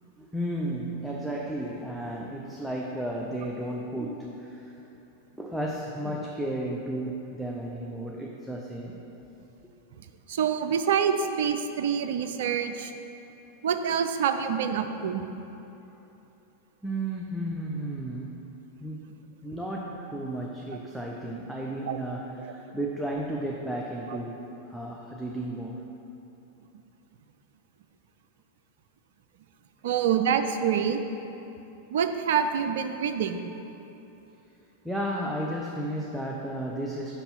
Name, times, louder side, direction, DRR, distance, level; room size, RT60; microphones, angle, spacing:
voice 1, 0.2-4.8 5.4-9.0 16.8-18.5 18.8-19.1 19.4-25.9 34.8-37.1, right 1 dB, ahead, -2 dB, 0.5 m, -33 dB
voice 2, 10.3-12.9 13.6-15.2 21.9-22.0 29.8-31.0 31.9-33.5, right 7 dB, 55° right, 8 dB, 0.4 m, -26 dB
5.6 x 5.4 x 5.5 m, 3.0 s
figure-of-eight pair, 90°, 0 cm